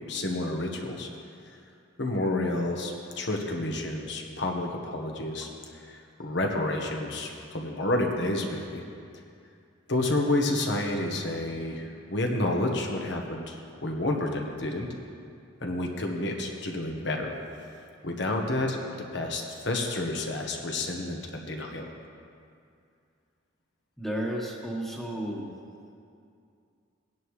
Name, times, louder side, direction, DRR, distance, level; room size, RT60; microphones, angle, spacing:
voice 1, 0.1-1.1 1.5-1.6 2.0-8.8 9.9-14.9 15.6-17.3 18.0-21.9, left 2 dB, 60° left, 1 dB, 1.3 m, -30 dB
voice 2, 24.0-25.5, right 1 dB, ahead, -2 dB, 1.4 m, -33 dB
19.0 x 10.5 x 3.2 m, 2.4 s
head